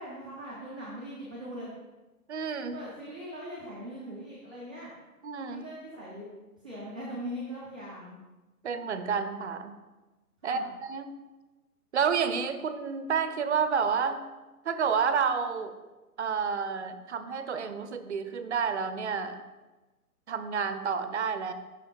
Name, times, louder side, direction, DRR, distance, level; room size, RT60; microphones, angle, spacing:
voice 1, 0.0-1.7 2.7-4.9 5.5-6.3 6.6-8.2 10.4-10.7, equal, 5° right, -13 dB, 0.4 m, -40 dB
voice 2, 2.3-2.8 5.2-5.6 8.6-9.7 10.4-11.2 11.9-14.2 14.6-15.7 16.2-19.4 20.3-21.5, right 6 dB, 50° right, 10 dB, 0.6 m, -30 dB
6.1 x 5.4 x 4.4 m, 1.1 s
figure-of-eight pair, 125°, 46 cm